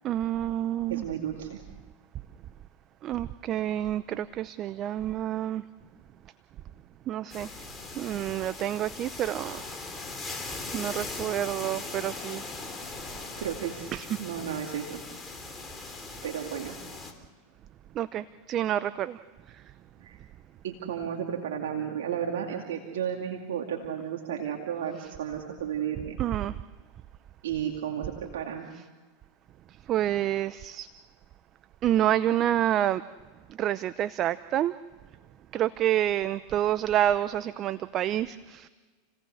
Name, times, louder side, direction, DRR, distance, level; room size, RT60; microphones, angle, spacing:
voice 1, 0.0-1.0 3.0-5.6 7.1-7.5 8.0-9.6 10.7-12.4 13.9-14.1 18.0-19.2 26.2-26.5 29.9-30.9 31.8-33.0 33.6-34.7 35.5-38.7, right 12 dB, 40° right, 15 dB, 0.6 m, -28 dB
voice 2, 0.9-1.6 13.4-15.0 16.2-16.8 20.0-20.2 20.6-26.2 27.4-28.7, right 9 dB, 75° right, 1 dB, 2.4 m, -33 dB
sound 1, 7.3-17.1, left 3 dB, 15° left, 3.5 m, -40 dB
29.5 x 18.0 x 6.5 m, 1.4 s
hypercardioid pair, 105°, 0 cm